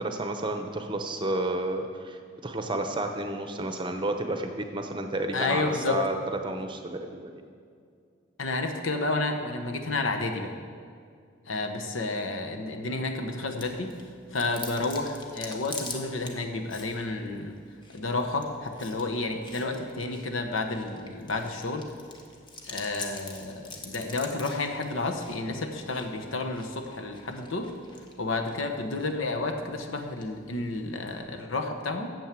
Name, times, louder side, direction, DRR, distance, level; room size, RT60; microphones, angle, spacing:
voice 1, 0.0-7.4, right 2 dB, 25° right, 5 dB, 0.7 m, -31 dB
voice 2, 5.3-6.0 8.4-10.5 11.5-13.9 14.3-17.6 17.9-21.9 22.6-27.7 28.2-32.1, left 3 dB, 85° left, 4 dB, 1.0 m, -31 dB
Chewing mastication, 13.6-31.2, left 3 dB, 25° left, 0.9 m, -46 dB
9.1 x 7.3 x 7.5 m, 2.3 s
head